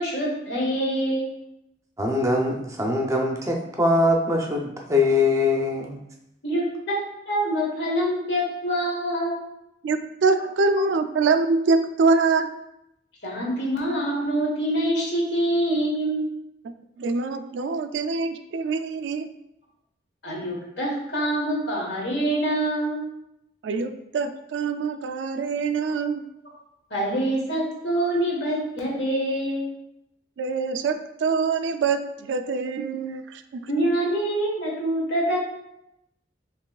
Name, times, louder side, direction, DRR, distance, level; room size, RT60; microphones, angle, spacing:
voice 1, 0.0-1.3 6.4-7.0 7.2-9.4 13.2-16.2 17.7-17.8 20.2-23.0 26.4-26.5 26.9-29.7 33.7-35.4, right 1 dB, 70° left, -3 dB, 1.3 m, -25 dB
voice 2, 2.0-6.0, left 2 dB, 15° right, 1 dB, 0.5 m, -22 dB
voice 3, 9.8-12.5 17.0-19.3 23.6-26.2 30.4-33.7, right 4 dB, 80° right, 8 dB, 0.3 m, -24 dB
5.2 x 3.0 x 2.3 m, 0.84 s
head